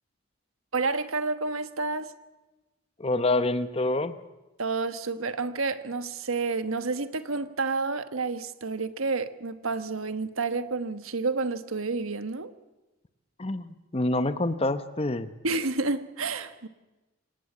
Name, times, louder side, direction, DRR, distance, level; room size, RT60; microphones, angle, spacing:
voice 1, 0.7-2.1 4.6-12.5 15.4-16.7, right 3 dB, 80° right, 1.3 m, -30 dB
voice 2, 3.0-4.1 13.4-15.3, left 2 dB, 30° left, 0.9 m, -27 dB
25.0 x 18.5 x 8.6 m
head